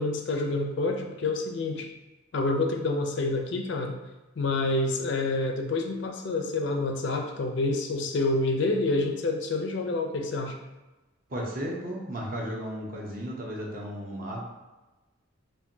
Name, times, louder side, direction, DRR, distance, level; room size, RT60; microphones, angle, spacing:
voice 1, 0.0-1.9 2.3-4.0 4.4-10.5, left 2 dB, 60° left, 3 dB, 0.4 m, -28 dB
voice 2, 11.3-14.4, equal, 45° right, -2 dB, 0.8 m, -34 dB
4.4 x 2.5 x 2.7 m, 1.1 s
head